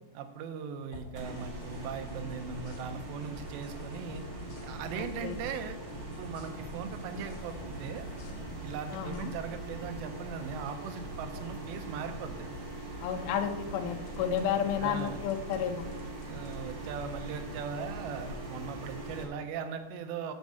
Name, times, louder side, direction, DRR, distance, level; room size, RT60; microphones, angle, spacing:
voice 1, 0.1-4.2 4.6-5.8 6.1-8.1 8.6-12.4 14.8-15.2 16.3-20.3, right 7 dB, 85° right, 8 dB, 3.1 m, -39 dB
sound 1, 0.9-1.8 2.1-5.6 5.9-9.3 14.1-14.4 15.0-15.6 15.9-16.6, left 3 dB, 55° left, 1.9 m, -50 dB
sound 2, 1.2-19.2, right 2 dB, 55° right, 0.9 m, -41 dB
voice 2, 4.9-5.3 8.9-9.3 13.0-15.9, left 8 dB, 80° left, 3 dB, 3.1 m, -32 dB
9.2 x 5.3 x 7.6 m, 1.1 s
omnidirectional pair, 5.0 m